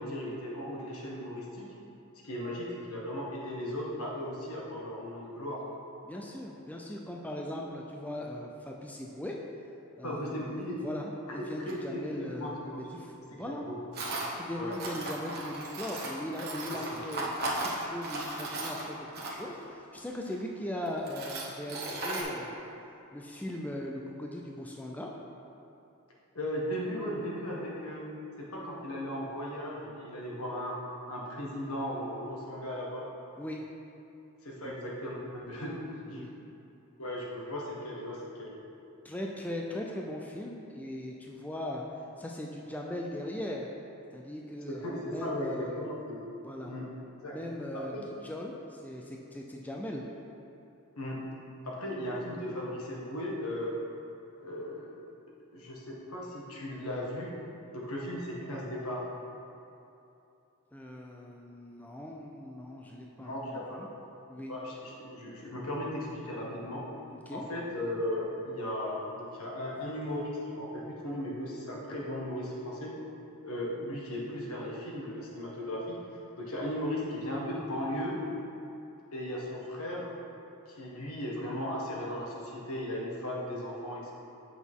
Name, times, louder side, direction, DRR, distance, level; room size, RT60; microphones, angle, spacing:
voice 1, 0.0-1.6 2.2-5.6 10.0-10.9 11.3-12.9 13.3-13.8 14.5-14.7 16.9-17.0 26.3-28.1 28.4-30.8 31.1-33.1 34.4-36.3 37.0-38.5 44.7-46.3 46.7-46.9 47.2-47.4 47.7-48.0 51.0-51.2 51.6-53.8 54.4-54.9 55.5-57.3 57.7-59.1 63.2-63.8 64.5-66.9 67.3-72.9 73.4-76.0 76.4-78.2 79.1-80.1 80.7-84.1, left 1 dB, 75° left, -3 dB, 1.5 m, -36 dB
voice 2, 6.0-9.4 10.0-13.6 14.4-22.6 23.1-25.1 33.4-33.6 34.6-34.8 36.1-36.3 39.0-41.9 42.2-43.7 44.1-45.9 46.4-46.8 47.3-48.0 48.2-50.1 60.7-63.9 64.3-64.6 67.3-67.4, left 1 dB, 5° left, -1 dB, 0.4 m, -39 dB
Tools, 11.7-11.8 13.9-14.3 14.7-19.6 20.3-20.4 20.9-22.2, right 2 dB, 45° right, 1.2 m, -36 dB
8.2 x 6.1 x 3.6 m, 2.8 s
head